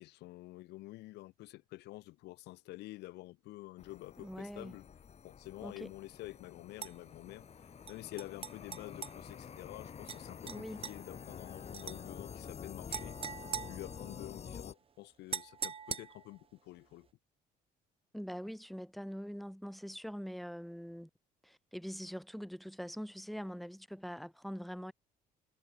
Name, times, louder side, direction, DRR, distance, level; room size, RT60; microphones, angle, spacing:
voice 1, 0.0-4.9 5.2-7.5 7.9-13.2 13.7-17.1, left 18 dB, 85° left, 2.1 m, -49 dB
sound 1, 3.8-14.7, left 7 dB, 40° left, 6.5 m, -49 dB
voice 2, 4.2-4.8 5.6-5.9 10.4-10.8 18.1-21.1 21.4-24.9, equal, ahead, 6.0 m, -43 dB
sound 2, 6.8-6.9 7.9-9.1 10.1-10.2 10.5-10.9 11.7-12.0 12.9-14.4 15.3-16.4, right 6 dB, 35° right, 1.3 m, -42 dB
cardioid pair, 110°, 17 cm